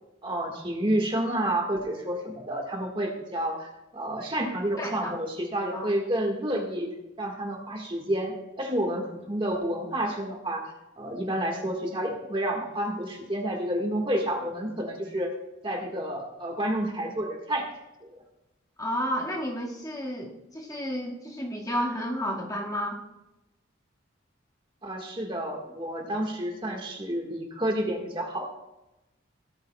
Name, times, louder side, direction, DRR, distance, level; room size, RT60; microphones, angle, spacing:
voice 1, 0.2-10.7 11.0-15.3 15.6-17.7 18.0-18.2 24.8-28.5, right 1 dB, 25° right, 1 dB, 1.7 m, -30 dB
voice 2, 4.8-5.2 5.7-5.9 18.8-23.0, equal, 20° left, -3 dB, 1.9 m, -31 dB
17.5 x 13.0 x 2.3 m, 0.94 s
head